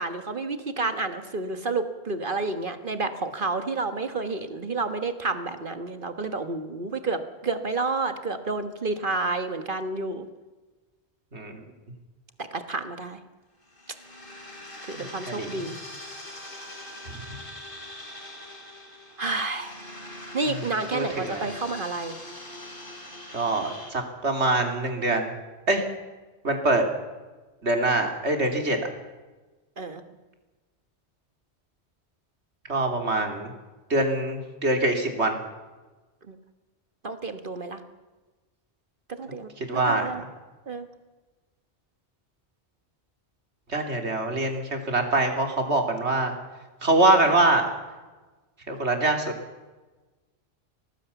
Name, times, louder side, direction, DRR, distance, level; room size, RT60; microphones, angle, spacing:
voice 1, 0.0-10.3 12.4-13.2 14.8-15.8 19.2-19.9 20.3-22.2 29.8-30.0 36.3-36.4 37.0-37.8 39.1-39.5 39.9-40.2 40.7-40.9, right 3 dB, 50° right, 9 dB, 1.6 m, -30 dB
sound 1, 13.6-23.9, left 1 dB, 55° left, 3.5 m, -42 dB
voice 2, 15.4-15.7 20.9-21.5 23.3-25.3 25.7-25.8 26.4-26.8 27.6-28.8 32.7-33.5 33.9-35.4 39.7-40.1 43.7-46.3 46.8-47.7 48.7-49.3, right 2 dB, 90° right, 4 dB, 3.4 m, -24 dB
24.5 x 18.5 x 7.0 m, 1.2 s
omnidirectional pair, 1.1 m